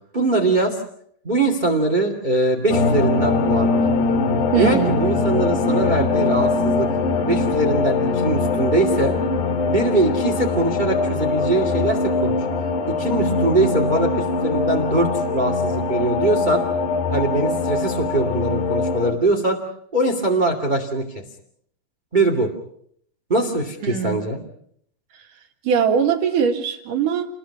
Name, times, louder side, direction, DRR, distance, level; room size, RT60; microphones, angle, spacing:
voice 1, 0.1-0.8 1.2-3.9 4.5-6.9 7.2-9.1 9.7-12.4 12.9-16.6 17.1-19.6 19.9-21.2 22.1-22.5 23.3-24.4, right 2 dB, 15° right, 2 dB, 1.8 m, -22 dB
sound 1, 2.7-19.1, left 3 dB, 85° left, 3.9 m, -22 dB
voice 2, 4.5-5.0 23.8-24.2 25.6-27.3, right 7 dB, 60° right, 4 dB, 3.3 m, -21 dB
29.0 x 21.5 x 5.9 m, 0.67 s
omnidirectional pair, 4.7 m